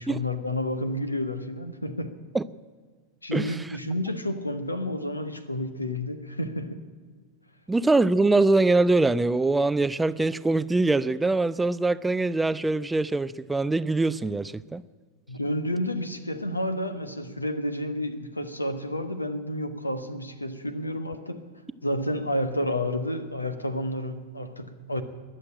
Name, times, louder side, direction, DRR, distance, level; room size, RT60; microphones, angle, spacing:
voice 1, 0.0-2.2 3.2-6.8 15.3-21.4 21.8-25.0, left 1 dB, 85° left, 1.1 m, -30 dB
voice 2, 3.3-3.8 7.7-14.8, right 2 dB, 10° right, 0.4 m, -23 dB
21.0 x 7.7 x 8.8 m
figure-of-eight pair, 90°, 0 cm